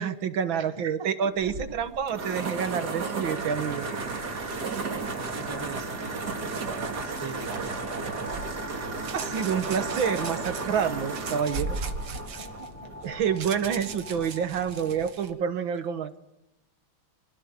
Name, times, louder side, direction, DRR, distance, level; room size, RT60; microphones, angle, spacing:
voice 1, 0.0-3.9 9.1-11.9 13.0-16.1, right 7 dB, 70° right, 11 dB, 1.9 m, -28 dB
voice 2, 0.5-2.2 4.2-4.7 5.3-8.1 8.7-9.5 11.1-13.2, right 4 dB, 15° right, 9 dB, 1.2 m, -45 dB
sound 1, 1.4-13.2, right 3 dB, 50° right, 2.8 m, -33 dB
sound 2, 3.9-15.1, left 2 dB, 5° left, 1.1 m, -44 dB
sound 3, 4.2-5.5 6.5-8.1 9.0-10.7 11.1-15.3, right 7 dB, 85° right, 2.5 m, -43 dB
25.5 x 16.0 x 8.7 m, 0.88 s
omnidirectional pair, 2.3 m